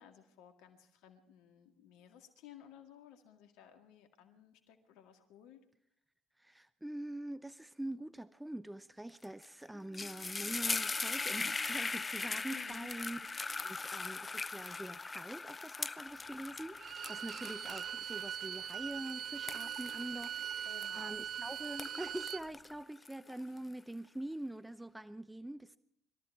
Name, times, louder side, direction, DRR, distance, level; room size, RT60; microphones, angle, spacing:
voice 1, 0.0-5.6 12.5-12.9 20.6-21.2 23.2-23.6, left 9 dB, 75° left, 2.0 m, -57 dB
voice 2, 6.4-13.2 13.6-20.7 20.9-25.8, right 1 dB, 10° right, 0.7 m, -44 dB
sound 1, 9.2-9.5 9.7-21.3 21.6-23.6, left 4 dB, 30° left, 0.6 m, -40 dB
Bowed string instrument, 16.7-22.4, right 9 dB, 50° right, 0.6 m, -41 dB
22.5 x 14.0 x 4.7 m
hypercardioid pair, 55°, 0 cm